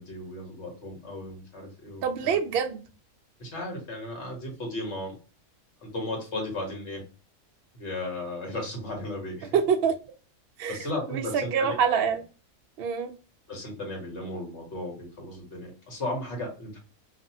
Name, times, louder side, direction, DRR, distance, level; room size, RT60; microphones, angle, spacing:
voice 1, 0.0-2.4 3.4-5.1 5.8-7.0 7.7-9.5 10.7-11.8 13.5-16.8, left 1 dB, 50° left, 1 dB, 1.4 m, -35 dB
voice 2, 2.0-2.8 9.5-10.0 10.6-10.8 11.1-12.2 12.8-13.1, right 7 dB, 75° right, 6 dB, 0.5 m, -25 dB
2.6 x 2.6 x 2.7 m, 0.35 s
omnidirectional pair, 1.6 m